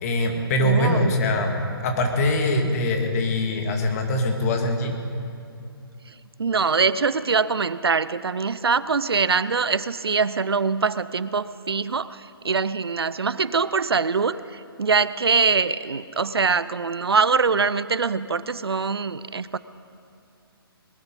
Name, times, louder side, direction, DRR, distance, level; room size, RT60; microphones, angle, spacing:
voice 1, 0.0-5.0, left 1 dB, 40° left, 3 dB, 2.1 m, -23 dB
voice 2, 0.6-1.1 6.4-19.6, right 5 dB, 80° right, 16 dB, 0.5 m, -23 dB
20.5 x 11.5 x 5.4 m, 2.5 s
figure-of-eight pair, 135°, 13 cm